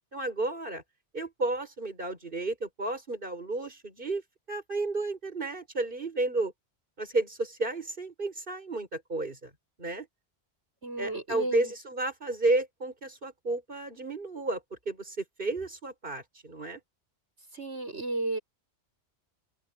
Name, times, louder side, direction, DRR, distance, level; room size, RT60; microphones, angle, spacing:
voice 1, 0.1-0.8 1.1-4.2 4.5-6.5 7.0-9.5 9.8-10.1 11.0-16.8, right 2 dB, 50° right, 5.5 m, -32 dB
voice 2, 10.8-11.7 17.5-18.4, right 2 dB, 80° right, 5.4 m, -33 dB
open air
omnidirectional pair, 1.1 m